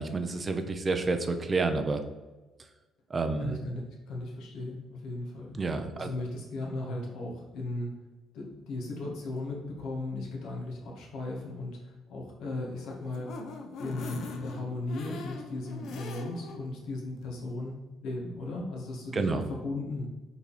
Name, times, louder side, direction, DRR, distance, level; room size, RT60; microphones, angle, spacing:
voice 1, 0.0-2.0 3.1-3.6 5.5-6.1 19.1-19.5, right 3 dB, 20° right, 7 dB, 0.5 m, -29 dB
voice 2, 3.4-5.6 6.0-7.9 8.3-13.3 13.8-20.1, left 2 dB, 70° left, -2 dB, 1.8 m, -36 dB
sound 1, 12.6-16.6 17.0-17.1 17.4-17.5, left 3 dB, 55° left, 0.8 m, -42 dB
5.8 x 4.2 x 4.2 m, 1.2 s
cardioid pair, 170°, 0 cm